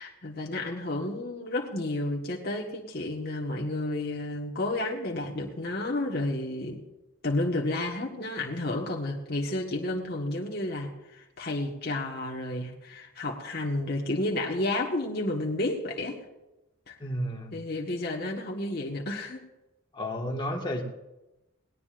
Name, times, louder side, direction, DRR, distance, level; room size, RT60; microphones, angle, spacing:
voice 1, 0.0-6.8 7.2-16.2 16.9-17.0 17.5-19.4, left 2 dB, 50° left, -1 dB, 1.4 m, -31 dB
voice 2, 17.0-17.5 19.9-20.8, equal, 25° left, 1 dB, 1.6 m, -32 dB
19.0 x 18.0 x 2.5 m, 1.0 s
head